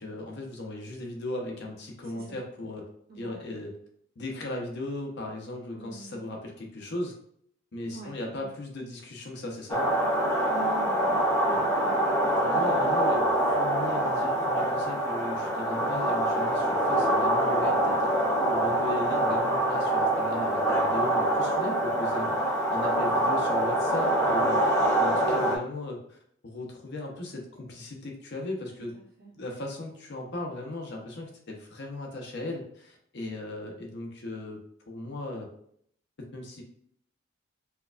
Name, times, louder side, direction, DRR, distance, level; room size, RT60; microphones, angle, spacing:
voice 1, 0.0-2.9 3.2-3.8 4.2-7.2 7.7-9.9 11.5-11.6 12.4-18.1 18.5-26.2 26.4-29.0 29.3-34.6 34.9-35.5 36.3-36.6, left 2 dB, 60° left, 1 dB, 0.7 m, -37 dB
voice 2, 3.1-3.5 5.7-6.3 7.9-8.5 10.5-12.0 12.5-12.6 21.3-21.5 28.9-29.3, right 4 dB, 50° right, -4 dB, 1.1 m, -45 dB
sound 1, 9.7-25.6, right 1 dB, 15° left, 0.7 m, -25 dB
4.4 x 2.3 x 2.4 m, 0.68 s
head